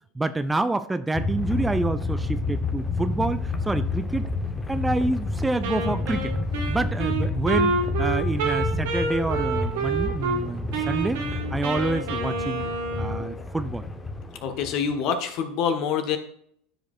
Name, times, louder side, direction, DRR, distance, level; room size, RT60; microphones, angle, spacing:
voice 1, 0.2-4.2 4.7-6.3 6.7-11.2 11.5-12.7 13.0-13.9, right 2 dB, 10° right, 12 dB, 0.4 m, -27 dB
sound 1, 1.1-15.1, left 3 dB, 15° left, 1.1 m, -29 dB
Wind instrument woodwind instrument, 5.6-10.4 10.7-13.3, right 3 dB, 65° right, 1.7 m, -28 dB
voice 2, 14.4-16.2, left 7 dB, 50° left, 7 dB, 1.3 m, -26 dB
13.5 x 5.1 x 2.6 m, 0.67 s
figure-of-eight pair, 80°, 0 cm